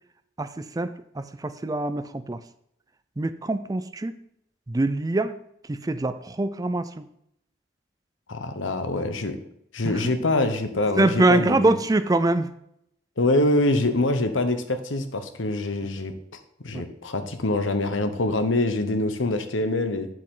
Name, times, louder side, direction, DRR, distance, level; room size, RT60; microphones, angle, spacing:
voice 1, 0.4-2.4 3.2-4.1 4.7-5.3 5.7-7.0 9.8-10.1 11.0-12.5, right 2 dB, 20° right, 12 dB, 0.4 m, -24 dB
voice 2, 8.3-9.4 9.7-11.8 13.2-16.1 16.6-20.1, left 2 dB, 85° left, 8 dB, 1.0 m, -25 dB
10.0 x 7.4 x 3.8 m, 0.74 s
head